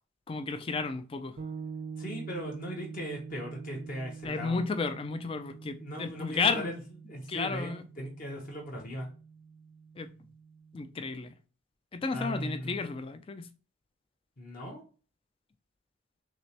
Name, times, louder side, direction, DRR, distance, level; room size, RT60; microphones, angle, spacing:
voice 1, 0.3-1.4 4.2-6.7 7.3-7.8 10.0-10.1 10.7-11.3 11.9-13.5, left 4 dB, 25° left, 0.3 m, -32 dB
sound 1, 1.4-11.0, right 5 dB, 70° right, 0.7 m, -45 dB
voice 2, 2.0-4.6 5.8-6.8 7.1-9.1 12.1-12.8 14.4-14.8, equal, 40° left, 0.9 m, -38 dB
6.0 x 2.1 x 2.9 m
head